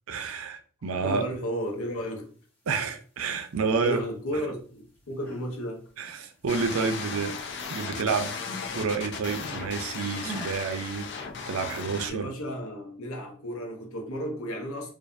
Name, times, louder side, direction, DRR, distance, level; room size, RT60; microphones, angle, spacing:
voice 1, 0.1-1.2 2.7-4.0 6.0-7.3 7.7-8.4 8.7-11.1 11.5-12.3, right 5 dB, 75° right, 0.5 m, -29 dB
voice 2, 1.0-2.3 3.6-5.9 12.1-14.9, equal, 75° left, 0.9 m, -33 dB
sound 1, 5.0-5.5 5.9-7.3 7.6-9.7 10.2-10.6, equal, 5° left, 1.3 m, -43 dB
sound 2, 6.5-12.1, left 5 dB, 50° left, 0.5 m, -36 dB
4.7 x 2.5 x 2.6 m
head